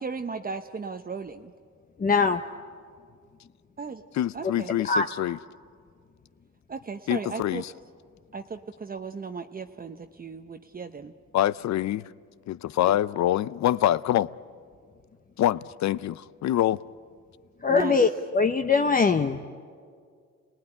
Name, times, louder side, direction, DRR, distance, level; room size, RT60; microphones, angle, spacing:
voice 1, 0.0-1.5 3.8-4.0 4.3-4.8 6.7-7.6 8.3-11.1 17.7-18.0, right 4 dB, 30° right, 0.9 m, -36 dB
voice 2, 2.0-2.4 4.9-5.0 17.6-19.4, left 4 dB, 30° left, 0.9 m, -22 dB
voice 3, 4.1-5.4 7.1-7.7 11.3-12.0 12.5-14.3 15.4-16.8, left 12 dB, 65° left, 0.6 m, -25 dB
29.5 x 19.0 x 10.0 m
cardioid pair, 90°, 30 cm